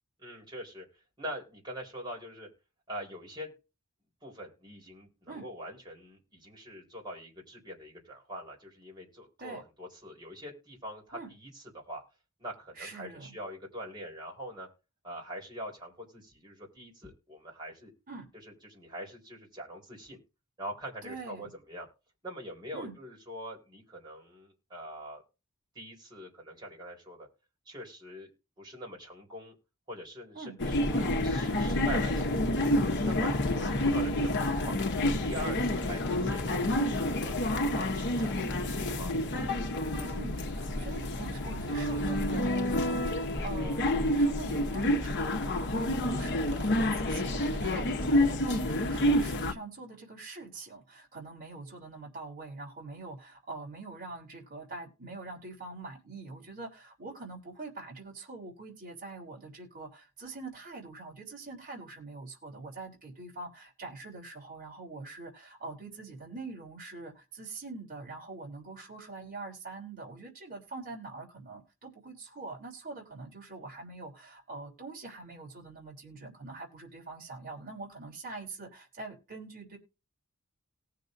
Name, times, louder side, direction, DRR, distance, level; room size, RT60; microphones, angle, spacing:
voice 1, 0.2-0.9 1.2-2.5 2.9-3.6 4.2-12.0 12.4-14.7 15.0-17.9 18.4-20.2 20.6-21.9 22.2-25.2 25.7-27.3 27.7-28.3 28.6-29.5 29.9-32.6 33.0-34.8 35.0-37.3 37.7-39.1, equal, 20° right, 4.0 m, -43 dB
voice 2, 12.7-13.3 18.1-18.3 21.0-21.5 22.7-22.9 30.3-30.6 40.0-79.8, right 3 dB, 40° right, 3.2 m, -44 dB
sound 1, 30.6-49.5, left 1 dB, 55° left, 0.9 m, -29 dB
19.0 x 6.7 x 2.6 m
head